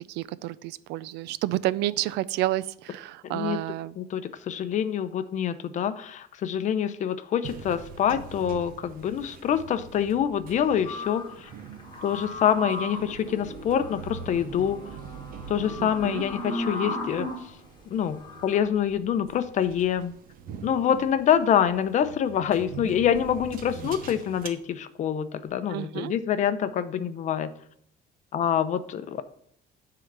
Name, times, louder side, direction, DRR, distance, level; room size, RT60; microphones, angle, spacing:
voice 1, 0.1-3.9 15.8-16.2 25.7-26.1, right 15 dB, 85° right, 18 dB, 0.4 m, -30 dB
voice 2, 3.2-3.6 4.0-11.5 12.0-14.8 15.5-17.3 17.9-20.1 20.6-27.5 28.3-29.2, left 9 dB, 45° left, 11 dB, 0.7 m, -26 dB
sound 1, 7.4-24.5, right 7 dB, 55° right, 1.0 m, -44 dB
sound 2, 10.8-17.5 18.1-18.6, left 1 dB, 25° left, 1.8 m, -36 dB
9.9 x 3.9 x 6.7 m, 0.68 s
cardioid pair, 140°, 17 cm